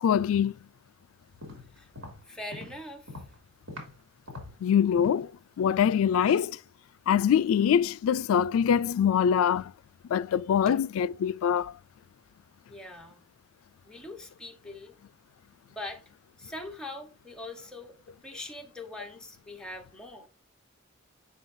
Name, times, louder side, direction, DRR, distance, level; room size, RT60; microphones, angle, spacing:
voice 1, 0.0-0.5 4.6-5.3 5.6-6.6 7.1-9.7 10.1-11.7, left 8 dB, 85° left, 0.3 m, -24 dB
sound 1, 1.2-4.0 4.3-5.3 5.7-6.0 6.3-6.4, left 1 dB, 90° right, 2.9 m, -44 dB
voice 2, 2.3-3.1 10.7-10.8 12.7-13.2 13.9-14.9 15.7-16.0 16.4-18.0 18.2-20.3, left 2 dB, 5° left, 1.0 m, -42 dB
7.6 x 5.5 x 2.6 m
head